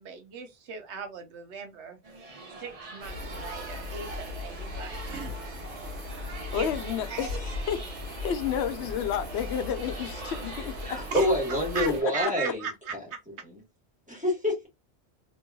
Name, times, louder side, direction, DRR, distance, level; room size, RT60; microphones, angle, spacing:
voice 1, 0.0-2.0 2.6-5.5 5.8-6.2 6.5-6.7 7.1-7.4 11.1-13.2, right 5 dB, 75° right, 1.1 m, -38 dB
sound 1, 2.0-12.2, right 3 dB, 35° right, 0.8 m, -44 dB
sound 2, 3.0-12.0, left 2 dB, 55° right, 1.3 m, -38 dB
voice 2, 6.5-7.3 7.7-7.8 8.1-11.0 12.0-12.3, left 9 dB, 75° left, 0.9 m, -31 dB
voice 3, 10.8-12.6 14.1-14.7, left 1 dB, 5° right, 1.3 m, -26 dB
3.0 x 3.0 x 2.3 m
omnidirectional pair, 1.2 m